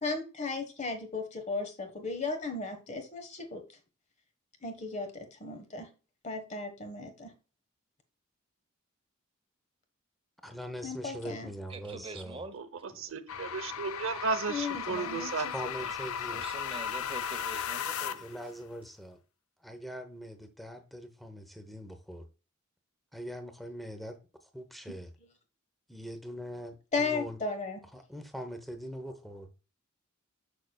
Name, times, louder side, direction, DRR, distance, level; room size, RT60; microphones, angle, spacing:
voice 1, 0.0-3.6 4.6-5.9 6.2-7.3 10.8-11.5 14.5-15.5 26.9-27.8, left 3 dB, 35° left, 1.3 m, -35 dB
voice 2, 10.4-12.4 12.9-13.0 15.5-16.4 18.1-19.2 19.6-22.3 23.1-25.1 25.9-27.4 27.9-29.5, equal, ahead, 0.9 m, -42 dB
voice 3, 11.7-12.6 16.3-18.3, right 3 dB, 25° right, 0.9 m, -44 dB
voice 4, 13.0-15.5, right 4 dB, 70° right, 0.8 m, -34 dB
sound 1, 13.3-18.4, left 8 dB, 90° left, 0.4 m, -36 dB
6.5 x 6.5 x 2.3 m
head